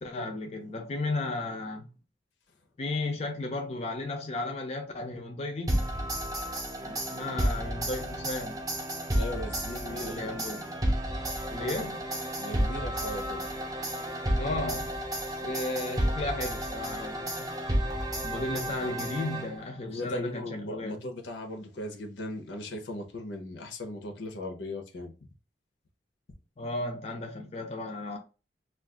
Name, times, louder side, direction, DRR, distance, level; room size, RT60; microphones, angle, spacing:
voice 1, 0.0-1.9 2.8-5.9 6.8-8.6 9.9-10.7 11.5-12.0 14.4-14.9 15.2-17.5 18.2-21.0 26.6-28.2, left 2 dB, 35° left, 0.4 m, -34 dB
sound 1, 5.7-19.8, right 1 dB, 20° right, 0.6 m, -32 dB
voice 2, 9.1-10.7 12.4-13.5 18.7-19.0 19.9-25.1, left 1 dB, 80° left, 0.7 m, -38 dB
2.4 x 2.4 x 3.6 m
head